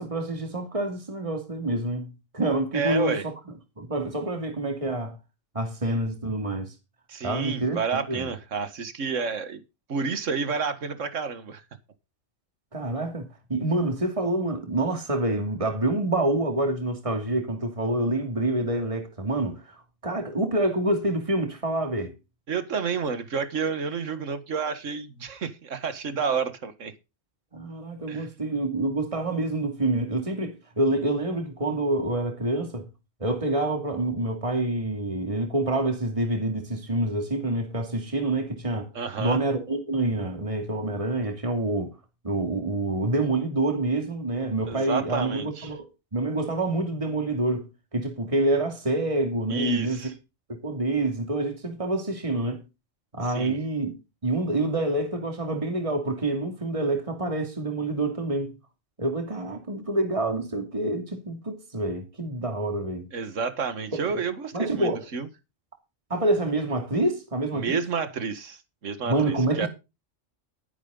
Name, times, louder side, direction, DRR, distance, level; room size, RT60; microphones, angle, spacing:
voice 1, 0.0-3.3 3.8-5.2 5.5-6.7 7.2-8.3 12.7-19.6 20.0-22.1 27.5-32.8 33.2-38.9 39.2-41.9 42.2-45.9 46.1-47.7 47.9-50.1 50.5-52.6 53.1-53.9 54.2-58.6 59.0-63.1 64.5-65.0 66.1-67.8 69.1-69.7, right 2 dB, 25° right, 2.7 m, -27 dB
voice 2, 2.7-3.3 7.1-9.6 9.9-11.6 22.5-26.9 28.1-28.3 38.9-39.4 44.7-45.7 49.5-50.1 53.3-53.6 63.1-65.3 67.5-69.7, right 5 dB, 80° right, 1.9 m, -30 dB
12.5 x 11.0 x 3.9 m
omnidirectional pair, 1.3 m